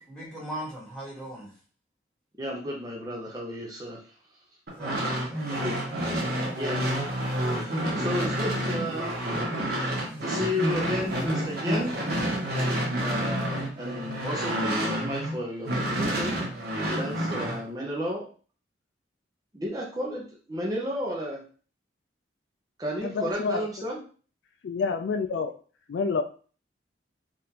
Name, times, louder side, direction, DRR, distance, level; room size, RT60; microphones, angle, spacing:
voice 1, 0.0-1.5 4.8-5.6, right 1 dB, 5° left, -8 dB, 1.3 m, -39 dB
voice 2, 2.4-4.0 5.6-5.8 6.6-7.0 7.4-9.2 9.7-12.0 12.9-16.3 17.0-18.3 19.5-21.4 22.8-24.0, equal, 20° right, -3 dB, 0.6 m, -33 dB
sound 1, 4.7-15.3 15.6-17.6, right 1 dB, 55° right, 0.9 m, -29 dB
voice 3, 23.0-23.7 24.6-25.5 25.9-26.2, left 5 dB, 70° left, 7 dB, 0.3 m, -28 dB
3.6 x 2.5 x 2.8 m, 0.40 s
head